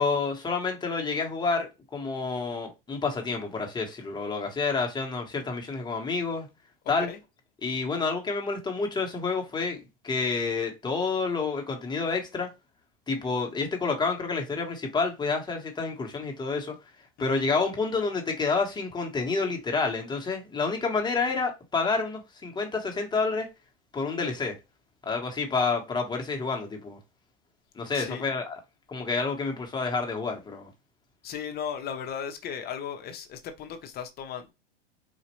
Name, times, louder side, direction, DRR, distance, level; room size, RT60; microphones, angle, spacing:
voice 1, 0.0-6.5 6.9-7.1 7.6-9.8 10.0-12.5 13.1-16.7 17.2-23.5 23.9-24.6 25.0-27.0 27.7-28.6 28.9-30.7, left 4 dB, 15° left, 1.1 m, -29 dB
voice 2, 27.9-28.2 31.2-34.5, left 8 dB, 30° left, 0.7 m, -36 dB
4.2 x 2.5 x 3.0 m
hypercardioid pair, 105°, 30 cm